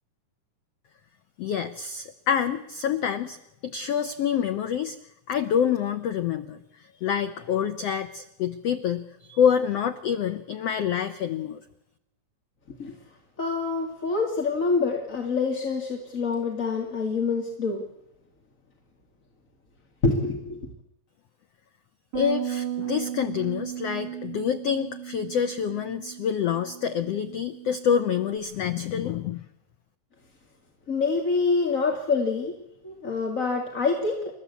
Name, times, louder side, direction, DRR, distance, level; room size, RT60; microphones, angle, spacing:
voice 1, 1.4-3.4 3.7-5.0 5.3-11.6 22.1-29.5, left 8 dB, 80° left, 10 dB, 1.4 m, -27 dB
voice 2, 13.4-17.8 20.0-20.7 30.9-32.5 32.8-34.3, left 4 dB, 25° left, 2 dB, 2.1 m, -26 dB
Bass guitar, 22.1-28.4, right 11 dB, 35° right, 5.0 m, -36 dB
29.5 x 14.0 x 8.4 m, 0.86 s
omnidirectional pair, 4.1 m